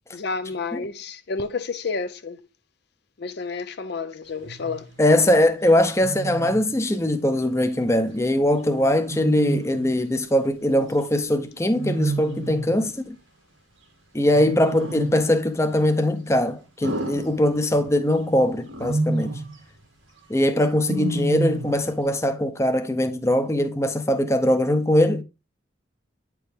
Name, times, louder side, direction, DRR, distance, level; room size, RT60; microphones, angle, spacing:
voice 1, 0.1-2.4 3.2-4.9, left 4 dB, 55° left, 0.6 m, -30 dB
Wild animals, 4.4-4.8 6.0-6.7 9.1-10.0 11.8-12.8 14.3-15.3 16.8-17.9 18.7-19.5 20.8-21.9, right 2 dB, 85° right, 1.8 m, -29 dB
voice 2, 5.0-13.2 14.1-19.3 20.3-25.2, left 1 dB, 15° left, 0.6 m, -21 dB
9.1 x 4.7 x 3.4 m
head